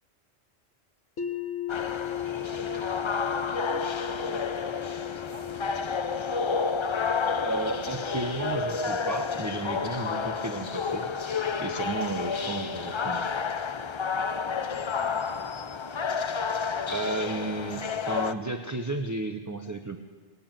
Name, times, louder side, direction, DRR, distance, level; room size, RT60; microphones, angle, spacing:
sound 1, 1.2-13.1, left 12 dB, 80° left, 1.4 m, -39 dB
sound 2, 1.7-18.3, left 5 dB, 45° left, 0.3 m, -30 dB
voice 1, 2.5-5.5 6.1-6.4 14.2-15.9, left 1 dB, 20° left, 1 dB, 1.9 m, -48 dB
voice 2, 7.4-11.1 11.6-13.3 16.9-20.0, right 2 dB, 20° right, 5 dB, 0.6 m, -33 dB
19.0 x 8.1 x 8.9 m, 1.5 s
omnidirectional pair, 1.2 m